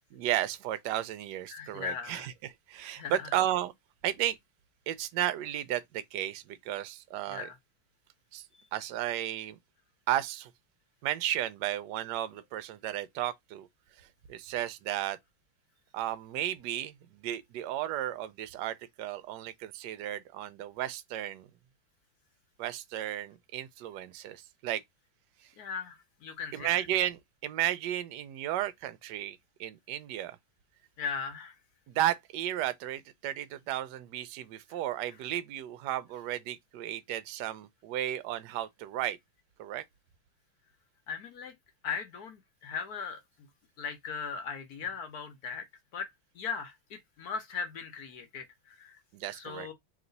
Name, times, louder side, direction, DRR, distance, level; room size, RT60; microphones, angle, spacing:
voice 1, 0.2-3.7 4.0-4.4 4.9-7.5 8.3-8.4 8.7-9.6 10.1-10.5 11.0-13.7 14.3-15.2 15.9-21.5 22.6-24.8 26.5-30.3 31.9-39.2 39.6-39.8 49.1-49.7, right 13 dB, 75° right, 1.0 m, -34 dB
voice 2, 1.5-2.3 3.0-3.2 7.3-7.5 25.6-26.9 31.0-31.5 41.1-41.5 41.8-43.2 43.8-45.6 45.9-46.1 46.3-49.0 49.3-49.7, left 6 dB, 60° left, 1.1 m, -38 dB
3.2 x 3.0 x 3.9 m
omnidirectional pair, 2.3 m